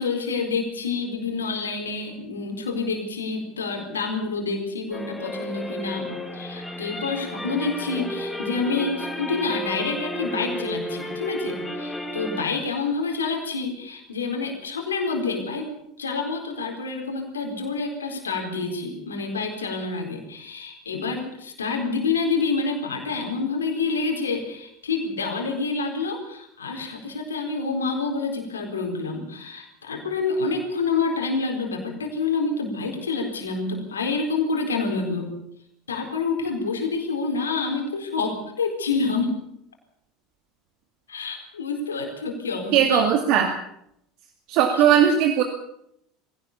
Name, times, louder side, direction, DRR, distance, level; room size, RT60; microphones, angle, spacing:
voice 1, 0.0-15.7 16.0-35.3 35.9-39.4 41.1-43.0 44.7-44.8, left 4 dB, 80° left, 2 dB, 4.2 m, -28 dB
sound 1, 4.9-12.4, left 1 dB, 5° left, 3.8 m, -33 dB
voice 2, 42.7-43.5 44.5-45.4, right 9 dB, 55° right, 4 dB, 2.4 m, -18 dB
22.5 x 16.5 x 7.0 m, 0.75 s
figure-of-eight pair, 75°, 0 cm